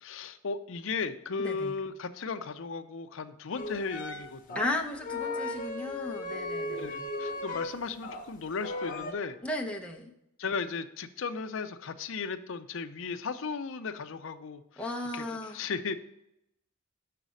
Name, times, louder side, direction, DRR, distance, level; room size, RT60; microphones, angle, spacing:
voice 1, 0.0-4.7 6.6-9.4 10.4-14.8 15.1-15.2 15.5-16.0, left 5 dB, 65° left, 10 dB, 0.5 m, -36 dB
voice 2, 1.4-1.8 4.5-7.1 9.4-10.1 14.8-15.6, left 1 dB, 5° left, 0 dB, 0.7 m, -35 dB
sound 1, 3.6-8.2 8.5-9.1, left 2 dB, 40° left, 1.1 m, -36 dB
6.8 x 4.1 x 6.3 m, 0.83 s
head